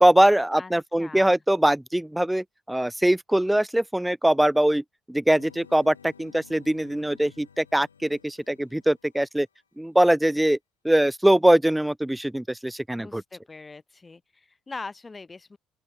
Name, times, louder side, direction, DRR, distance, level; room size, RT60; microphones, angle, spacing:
voice 1, 0.0-9.5 9.8-10.6 10.8-13.2, right 1 dB, 5° right, 0.8 m, -22 dB
voice 2, 1.0-1.4 12.9-15.6, left 3 dB, 25° left, 1.7 m, -41 dB
sound 1, 5.4-9.6, left 7 dB, 85° left, 1.7 m, -54 dB
open air
figure-of-eight pair, 50°, 0 cm